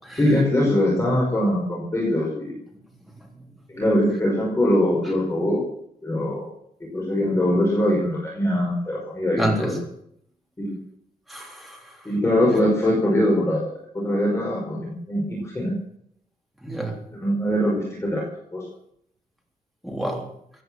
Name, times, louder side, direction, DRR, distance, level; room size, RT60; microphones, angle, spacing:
voice 1, 0.1-2.6 3.7-5.6 6.0-6.5 6.8-9.7 10.6-10.8 12.0-15.7 17.2-18.2 18.5-18.6, left 1 dB, 20° left, -3 dB, 5.6 m, -22 dB
voice 2, 9.4-9.8 11.3-12.0 16.6-17.0 19.8-20.3, right 1 dB, ahead, 1 dB, 3.5 m, -28 dB
16.5 x 11.0 x 7.8 m, 0.70 s
wide cardioid pair, 135°, 15 cm